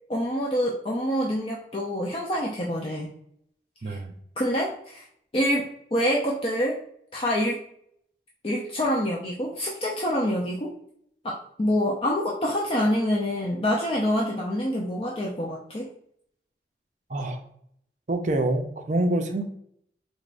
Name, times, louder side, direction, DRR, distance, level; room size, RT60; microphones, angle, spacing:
voice 1, 0.1-3.1 3.8-4.0 4.4-5.0 5.3-5.7 5.9-6.8 7.1-7.6 8.4-10.7 11.2-15.9, equal, 30° left, -3 dB, 0.5 m, -26 dB
voice 2, 3.8-4.1 17.1-17.4 18.1-19.4, right 1 dB, 45° right, 5 dB, 0.5 m, -26 dB
4.1 x 3.4 x 2.5 m, 0.68 s
head